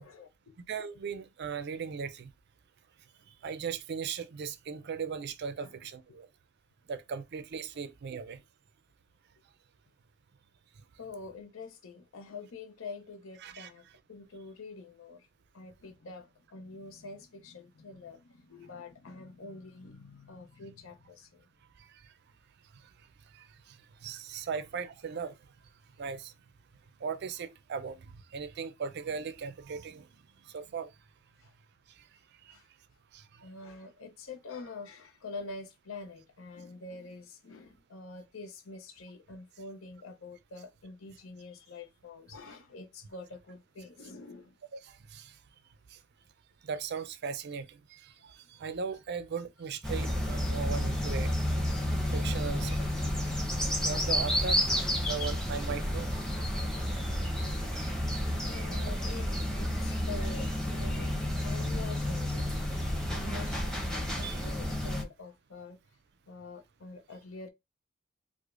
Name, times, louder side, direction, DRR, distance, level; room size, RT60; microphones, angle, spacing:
voice 1, 0.0-0.5 5.6-5.7 11.0-15.3 15.5-21.4 31.4-31.5 32.5-32.6 33.4-44.5 52.2-52.4 58.4-61.1 61.4-62.4 63.1-65.8 66.3-67.5, left 3 dB, 90° left, 0.6 m, -46 dB
voice 2, 0.7-2.3 3.4-6.3 6.9-8.4 13.4-13.7 23.3-23.8 24.0-25.4 26.0-26.3 27.0-30.1 30.5-30.9 32.5-32.6 33.1-33.2 44.8-45.3 46.6-51.3 52.1-52.8 53.8-54.6 55.0-56.2 64.2-64.4, right 6 dB, 55° right, 0.4 m, -38 dB
sound 1, 49.8-65.0, left 1 dB, 5° left, 0.7 m, -31 dB
4.8 x 2.1 x 2.4 m
head